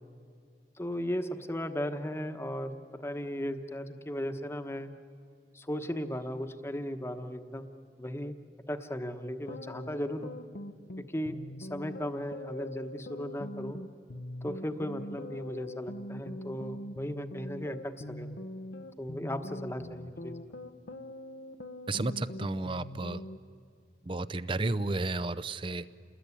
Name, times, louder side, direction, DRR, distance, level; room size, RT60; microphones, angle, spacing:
voice 1, 0.8-4.9 5.5-7.7 8.0-8.3 8.7-10.4 11.0-13.8 14.4-18.3 19.0-20.4, equal, 15° left, 8 dB, 1.2 m, -36 dB
sound 1, 9.5-23.4, left 1 dB, 75° left, 1.0 m, -43 dB
voice 2, 21.9-23.2 24.0-25.9, right 2 dB, 30° right, 15 dB, 0.6 m, -32 dB
29.0 x 20.5 x 9.8 m, 2.4 s
head